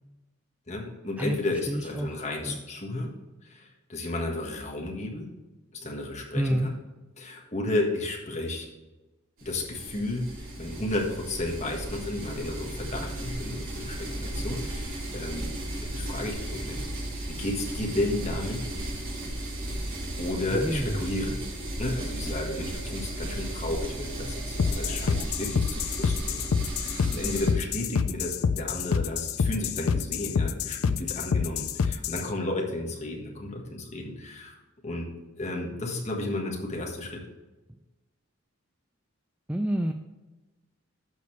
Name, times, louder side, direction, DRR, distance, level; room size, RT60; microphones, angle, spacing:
voice 1, 0.7-3.1 3.4-5.3 5.7-6.7 7.2-8.7 9.4-15.5 15.8-18.6 20.2-21.4 21.8-34.5 34.8-35.1 35.4-37.2, left 1 dB, 30° left, 0 dB, 1.5 m, -33 dB
voice 2, 1.7-2.2 2.5-2.6 6.3-6.7 20.5-21.0 39.5-39.9, right 1 dB, 5° right, 5 dB, 0.3 m, -28 dB
sound 1, 9.4-27.5, right 1 dB, 70° right, 2.9 m, -35 dB
sound 2, 24.6-32.3, left 6 dB, 75° left, 0.4 m, -27 dB
11.5 x 6.7 x 3.3 m, 1.1 s
head